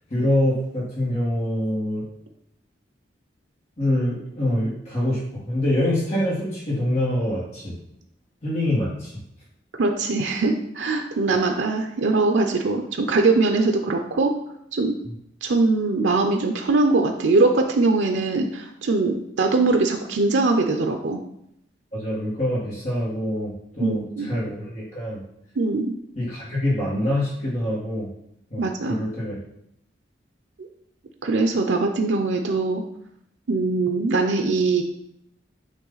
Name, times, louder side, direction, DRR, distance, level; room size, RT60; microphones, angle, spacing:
voice 1, 0.1-2.1 3.8-7.8 8.4-9.1 15.0-15.1 21.9-25.2 26.2-28.1 28.5-29.4, left 1 dB, 40° left, -9 dB, 1.9 m, -25 dB
voice 2, 9.8-14.3 14.7-15.0 15.4-21.2 23.8-24.3 25.6-25.9 28.6-29.0 31.2-32.8 33.5-34.8, right 3 dB, 85° right, 4 dB, 0.6 m, -21 dB
9.0 x 3.1 x 3.9 m, 0.76 s
head